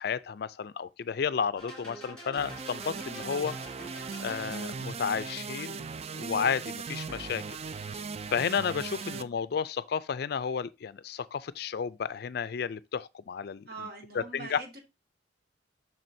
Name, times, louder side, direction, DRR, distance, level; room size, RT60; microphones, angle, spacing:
voice 1, 0.0-3.6 4.2-5.8 6.1-7.4 7.8-8.1 8.3-13.6 14.1-14.6, left 6 dB, 55° left, 0.4 m, -32 dB
sound 1, 1.6-5.0, equal, 5° left, 3.1 m, -46 dB
sound 2, 2.4-9.2, right 5 dB, 35° right, 0.3 m, -38 dB
voice 2, 2.9-3.2 9.0-9.3 13.7-14.8, right 3 dB, 55° right, 2.0 m, -44 dB
7.5 x 6.0 x 2.7 m
head